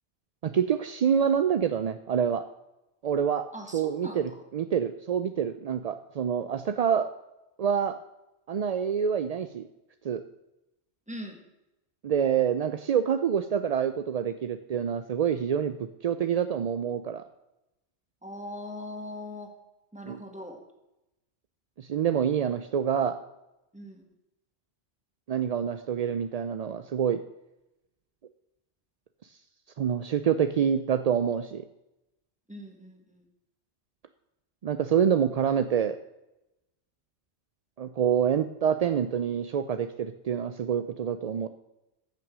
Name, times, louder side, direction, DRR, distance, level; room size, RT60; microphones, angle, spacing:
voice 1, 0.4-2.4 3.0-3.5 3.7-7.1 7.6-8.0 8.5-9.7 10.0-10.2 12.0-17.2 20.1-20.2 21.8-23.2 25.3-27.2 29.8-31.6 34.6-36.0 37.8-41.5, right 8 dB, 60° right, 10 dB, 0.4 m, -27 dB
voice 2, 3.5-4.4 11.1-11.4 18.2-19.5 19.9-20.6 23.7-24.0 32.5-33.2, left 1 dB, 5° right, 3 dB, 1.7 m, -41 dB
14.5 x 6.1 x 6.1 m, 0.93 s
omnidirectional pair, 1.2 m